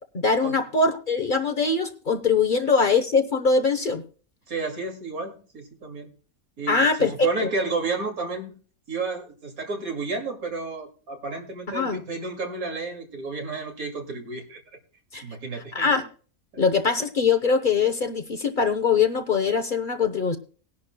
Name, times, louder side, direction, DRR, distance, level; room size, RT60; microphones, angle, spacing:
voice 1, 0.1-4.0 6.7-7.1 7.4-7.5 11.7-12.0 15.1-15.2 15.7-16.1 16.6-20.4, left 4 dB, 40° left, 8 dB, 0.9 m, -22 dB
voice 2, 4.5-6.1 6.6-8.5 8.9-14.6 15.2-15.9 16.5-16.6, right 3 dB, 90° right, 3 dB, 2.8 m, -31 dB
19.5 x 10.5 x 2.2 m, 0.40 s
omnidirectional pair, 1.5 m